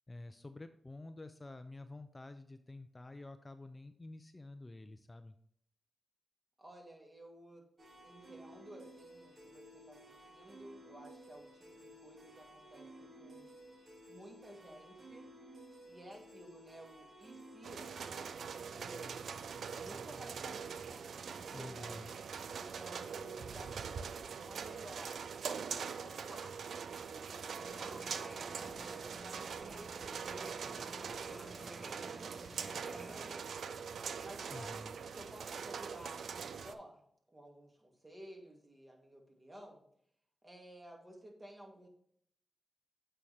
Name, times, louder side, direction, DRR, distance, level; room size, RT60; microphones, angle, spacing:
voice 1, 0.1-5.4 21.5-22.1 34.5-34.9, left 2 dB, 30° left, 9 dB, 0.5 m, -49 dB
voice 2, 6.6-7.7 8.0-13.5 14.1-15.3 15.8-19.2 19.8-21.9 22.5-25.2 26.0-26.6 27.1-31.1 31.6-32.3 32.8-33.7 34.2-34.8 35.1-37.0 37.3-39.8 40.4-41.9, right 1 dB, 30° right, 0 dB, 2.4 m, -54 dB
sound 1, 7.8-19.5, right 1 dB, 50° right, 2.1 m, -55 dB
sound 2, 17.6-36.7, right 6 dB, 80° right, 0.4 m, -43 dB
sound 3, 27.6-33.4, equal, 15° right, 1.1 m, -52 dB
8.4 x 4.4 x 3.5 m, 0.67 s
cardioid pair, 50°, 0 cm